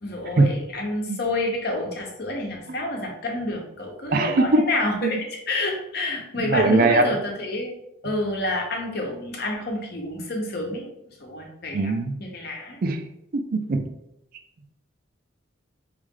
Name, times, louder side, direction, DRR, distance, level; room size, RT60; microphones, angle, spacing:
voice 1, 0.0-5.2 5.5-7.7 8.0-10.9 11.2-12.8, left 1 dB, 55° left, 0 dB, 0.9 m, -29 dB
voice 2, 4.1-4.7 5.0-5.1 6.4-7.2 11.7-12.1 12.8-13.0 13.3-13.8, right 2 dB, 50° right, 6 dB, 0.4 m, -20 dB
4.0 x 3.3 x 3.7 m, 0.82 s
head